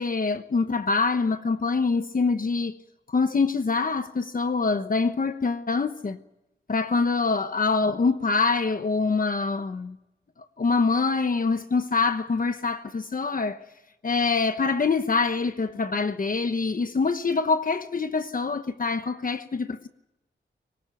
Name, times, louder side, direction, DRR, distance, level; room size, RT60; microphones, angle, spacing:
voice 1, 0.0-2.7 3.1-6.2 6.7-10.0 10.6-13.6 14.0-19.9, left 4 dB, 45° left, 1.0 m, -25 dB
22.0 x 19.5 x 9.1 m
wide cardioid pair, 120°, 20 cm